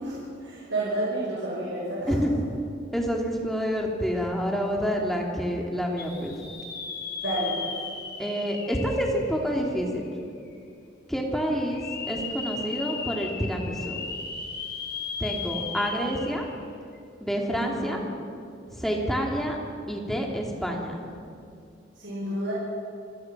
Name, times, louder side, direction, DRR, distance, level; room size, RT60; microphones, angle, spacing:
voice 1, 0.0-2.1 7.2-7.7 17.6-18.1 22.0-22.5, right 1 dB, 70° right, -5 dB, 5.6 m, -30 dB
voice 2, 2.9-6.4 8.2-10.1 11.1-13.9 15.2-16.4 17.2-18.0 18.7-19.6 19.9-21.0, equal, ahead, 0 dB, 2.7 m, -28 dB
sound 1, 6.0-9.9 10.5-10.6 11.6-16.6 16.9-17.0 19.0-19.2, left 5 dB, 55° left, 3.9 m, -36 dB
27.0 x 20.5 x 6.1 m, 2.5 s
head